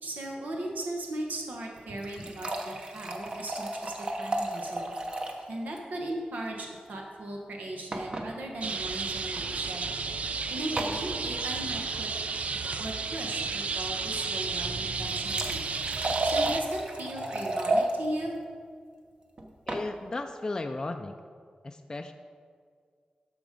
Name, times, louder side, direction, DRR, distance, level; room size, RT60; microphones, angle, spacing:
voice 1, 0.0-4.9 5.5-9.9 10.5-12.1 12.8-18.3, right 1 dB, 85° right, 0 dB, 1.1 m, -37 dB
sound 1, 1.7-5.5 5.8-5.9 6.1-6.2 7.9-8.3 9.2-9.4 10.8-11.0 14.8-17.9 19.4-19.9, right 1 dB, 35° right, 0.9 m, -32 dB
sound 2, 8.6-16.6, right 4 dB, 55° right, 0.4 m, -32 dB
voice 2, 19.7-21.2 21.6-22.1, left 2 dB, 25° left, 5 dB, 0.4 m, -35 dB
13.0 x 5.1 x 5.2 m, 2.1 s
wide cardioid pair, 170°, 3 cm